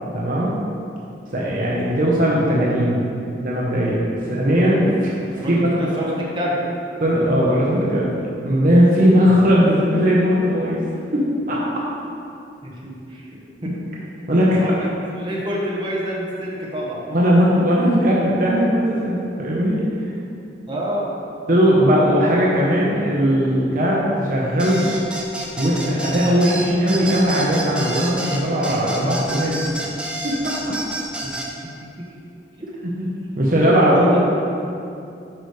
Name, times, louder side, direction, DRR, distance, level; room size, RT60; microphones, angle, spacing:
voice 1, 0.1-0.6 1.3-3.1 3.4-5.7 7.0-8.1 8.4-10.8 11.1-11.6 14.3-14.7 17.1-19.8 21.5-24.9 25.6-29.7 30.2-30.7 33.0-33.1 33.4-34.2, equal, 50° right, -5 dB, 0.9 m, -18 dB
voice 2, 5.4-6.5 12.6-13.7 14.3-17.0 20.7-21.1 31.2-31.4 32.0-32.1 32.6-32.7 34.1-34.2, equal, 25° right, -5 dB, 1.1 m, -28 dB
sound 1, 24.6-31.5, right 1 dB, 5° right, 0.6 m, -29 dB
8.7 x 5.2 x 3.3 m, 2.6 s
head